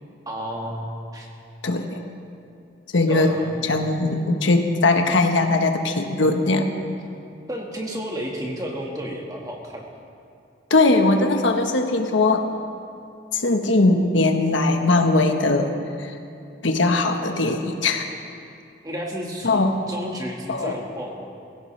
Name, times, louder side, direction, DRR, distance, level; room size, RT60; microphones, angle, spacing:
voice 1, 0.3-1.3 3.1-3.7 7.5-9.9 18.8-21.2, equal, 20° right, -1 dB, 1.7 m, -32 dB
voice 2, 1.6-2.0 2.9-3.3 3.6-6.7 10.7-12.5 13.3-15.7 16.0-16.1 16.6-18.1 19.4-19.8 20.5-20.7, left 2 dB, 85° left, 4 dB, 1.2 m, -20 dB
22.0 x 16.0 x 3.3 m, 2.5 s
head